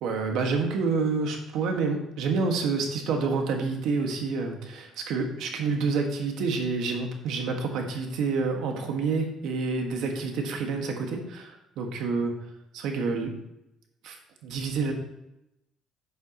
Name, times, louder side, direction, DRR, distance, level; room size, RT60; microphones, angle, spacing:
voice 1, 0.0-12.3 12.7-13.3 14.0-14.2 14.4-14.9, right 4 dB, 75° right, 3 dB, 1.7 m, -28 dB
11.5 x 7.3 x 3.0 m, 0.87 s
cardioid pair, 120°, 0 cm